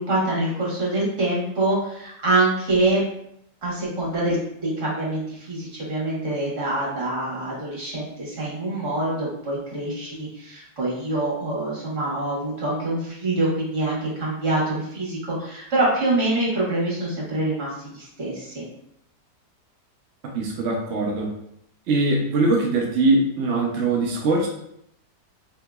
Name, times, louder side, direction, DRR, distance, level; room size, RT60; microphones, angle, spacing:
voice 1, 0.0-3.0 3.6-4.4 4.6-18.6, right 2 dB, 45° right, -5 dB, 1.5 m, -25 dB
voice 2, 20.3-21.3 21.9-24.5, right 2 dB, 75° right, -1 dB, 0.6 m, -21 dB
3.7 x 2.7 x 2.3 m, 0.74 s
omnidirectional pair, 1.8 m